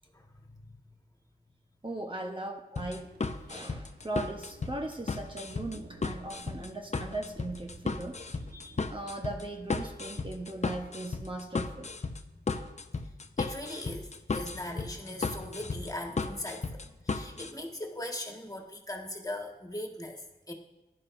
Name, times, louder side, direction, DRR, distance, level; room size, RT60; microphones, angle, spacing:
voice 1, 0.1-0.8 8.5-8.8 13.0-13.1 13.4-20.5, left 1 dB, 20° left, 1 dB, 1.8 m, -40 dB
voice 2, 1.8-3.1 3.5-8.4 8.9-11.9, right 2 dB, 30° right, 2 dB, 1.1 m, -38 dB
sound 1, 2.8-17.5, left 4 dB, 45° left, 0.7 m, -35 dB
Thunder, 2.9-12.6, right 3 dB, 75° right, 1.4 m, -56 dB
15.0 x 11.0 x 2.7 m, 1.0 s
cardioid pair, 50°, 17 cm